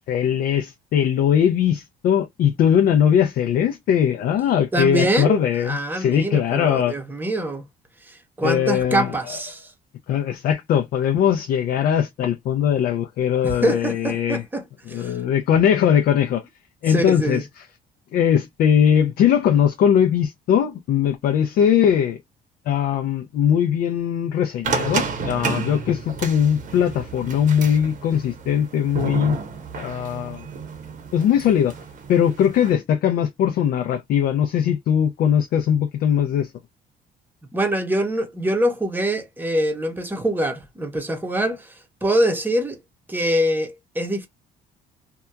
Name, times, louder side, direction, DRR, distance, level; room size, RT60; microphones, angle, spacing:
voice 1, 0.1-7.0 8.4-9.4 10.1-14.4 14.9-16.4 16.8-17.5 18.1-22.2 22.7-29.4 29.8-30.4 31.1-31.8 32.1-36.5, left 9 dB, 65° left, 0.4 m, -20 dB
voice 2, 4.7-7.7 8.1-9.7 13.4-15.2 16.9-17.4 37.5-41.7 42.0-42.8 43.1-44.3, right 1 dB, 10° right, 0.7 m, -24 dB
sound 1, 24.6-32.7, right 5 dB, 50° right, 0.8 m, -31 dB
2.7 x 2.2 x 2.2 m
cardioid pair, 110°, 17 cm